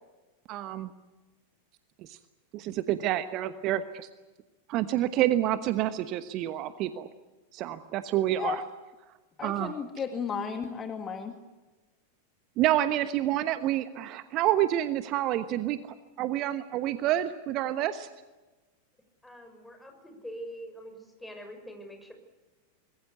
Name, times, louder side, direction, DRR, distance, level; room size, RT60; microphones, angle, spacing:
voice 1, 0.5-0.9 2.0-2.2 2.5-4.1 4.7-7.1 7.5-8.6 9.4-9.7 12.6-18.1, right 13 dB, 40° right, 12 dB, 1.2 m, -28 dB
voice 2, 9.4-11.4, left 6 dB, 25° left, 6 dB, 2.1 m, -34 dB
voice 3, 19.2-22.1, equal, 5° left, 4 dB, 6.2 m, -44 dB
25.0 x 21.5 x 8.3 m, 1.2 s
figure-of-eight pair, 90°, 0 cm